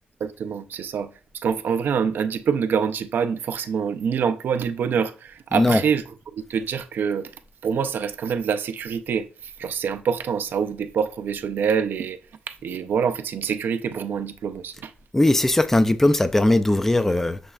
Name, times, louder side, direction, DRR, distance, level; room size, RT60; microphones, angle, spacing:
voice 1, 0.2-6.0 6.3-7.3 7.6-12.2 12.5-14.9, right 7 dB, 70° right, 0.4 m, -26 dB
voice 2, 5.5-5.8 15.1-17.4, left 1 dB, 10° left, 0.3 m, -19 dB
6.8 x 3.2 x 2.3 m
wide cardioid pair, 125°, 4 cm